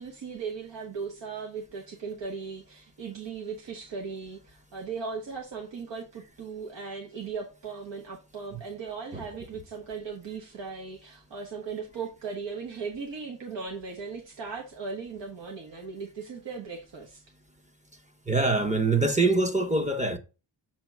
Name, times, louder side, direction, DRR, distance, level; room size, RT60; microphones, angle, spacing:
voice 1, 0.0-17.2, right 5 dB, 90° right, 1.4 m, -38 dB
voice 2, 18.3-20.2, right 3 dB, 15° right, 0.8 m, -24 dB
7.1 x 3.0 x 6.0 m
wide cardioid pair, 160°, 42 cm